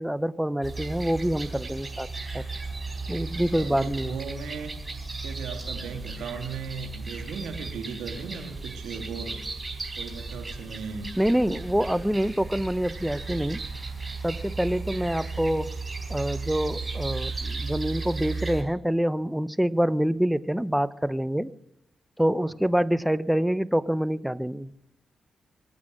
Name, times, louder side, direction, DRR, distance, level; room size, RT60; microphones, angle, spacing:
voice 1, 0.0-2.1 2.3-2.4 3.1-4.2 11.2-13.6 14.2-15.7 16.1-21.5 22.2-24.7, equal, 5° right, 17 dB, 0.7 m, -26 dB
sound 1, 0.6-18.6, right 3 dB, 35° right, 4.1 m, -35 dB
voice 2, 3.5-4.7 5.2-9.4 9.9-11.2 22.4-22.5, right 5 dB, 85° right, 5 dB, 2.0 m, -37 dB
24.0 x 8.5 x 6.2 m, 0.80 s
supercardioid pair, 50°, 0 cm